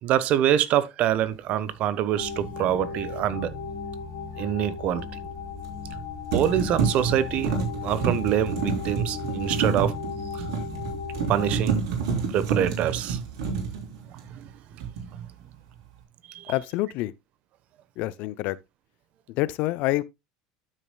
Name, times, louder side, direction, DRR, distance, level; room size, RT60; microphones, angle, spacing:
voice 1, 0.0-3.5 4.4-5.1 6.3-7.6 7.8-9.9 10.3-10.4 11.3-11.8 12.3-13.2 14.1-14.5 14.7-14.8 15.1-15.2 16.3-16.5, right 11 dB, 55° right, 1.0 m, -25 dB
sound 1, 2.2-11.6, left 5 dB, 80° left, 3.2 m, -35 dB
sound 2, 2.3-2.5 5.6-6.0 6.3-14.5 14.8-15.2, right 6 dB, 75° right, 3.4 m, -29 dB
voice 2, 16.5-17.1 18.0-18.6 19.3-20.0, left 17 dB, 60° left, 0.5 m, -27 dB
12.5 x 6.4 x 2.3 m
hypercardioid pair, 80°, 3 cm